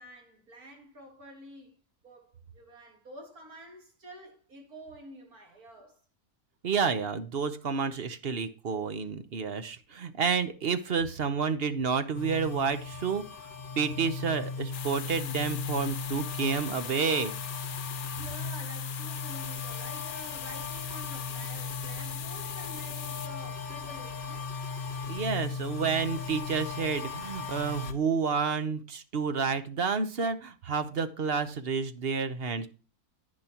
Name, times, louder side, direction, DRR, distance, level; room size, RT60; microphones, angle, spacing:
voice 1, 0.0-6.0 18.2-24.6, right 1 dB, 80° right, 3.6 m, -49 dB
voice 2, 6.6-13.2 13.8-17.3 25.1-32.7, right 5 dB, 45° right, 1.0 m, -30 dB
sound 1, 12.1-27.9, left 4 dB, 40° left, 1.2 m, -37 dB
sound 2, 14.7-23.3, left 9 dB, 60° left, 0.5 m, -41 dB
10.5 x 9.9 x 2.9 m
omnidirectional pair, 1.6 m